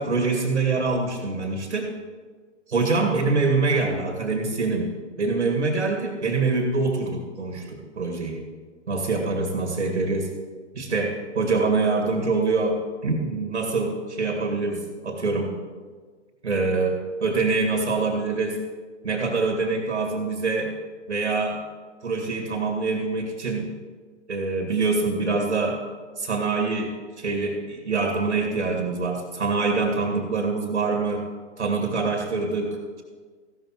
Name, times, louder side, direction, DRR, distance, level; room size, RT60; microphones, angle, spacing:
voice 1, 0.0-1.9 2.7-4.9 5.2-8.4 8.9-10.3 10.7-15.5 16.4-18.6 19.0-20.7 21.1-21.6 22.0-23.7 24.3-25.8 26.2-31.3 31.6-33.0, right 3 dB, 70° right, 3 dB, 2.2 m, -25 dB
15.0 x 12.5 x 3.1 m, 1.5 s
figure-of-eight pair, 120°, 35 cm